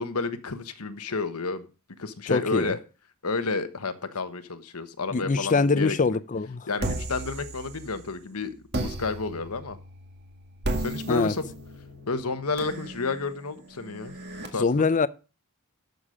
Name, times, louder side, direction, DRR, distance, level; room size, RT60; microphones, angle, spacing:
voice 1, 0.0-1.7 2.0-2.8 3.2-6.0 6.7-9.8 10.8-11.5 12.1-14.1 14.5-14.9, left 3 dB, 75° left, 1.2 m, -31 dB
voice 2, 2.3-2.7 5.1-6.7 11.1-11.3 14.6-15.1, left 4 dB, 35° left, 0.5 m, -23 dB
sound 1, 6.8-8.2 8.7-14.5, right 1 dB, 50° right, 2.0 m, -35 dB
12.0 x 6.9 x 5.0 m
head